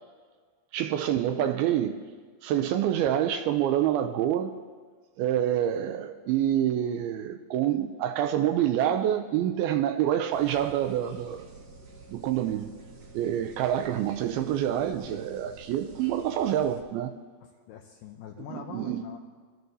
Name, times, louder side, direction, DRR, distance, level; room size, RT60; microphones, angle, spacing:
voice 1, 0.7-2.0 2.4-4.5 5.2-11.5 12.1-12.7 13.1-17.1 18.5-19.0, right 11 dB, 85° right, 2.3 m, -27 dB
sound 1, 10.3-16.8, right 3 dB, 65° right, 1.6 m, -49 dB
voice 2, 17.4-19.2, left 9 dB, 85° left, 2.0 m, -44 dB
22.0 x 12.5 x 2.7 m
omnidirectional pair, 4.7 m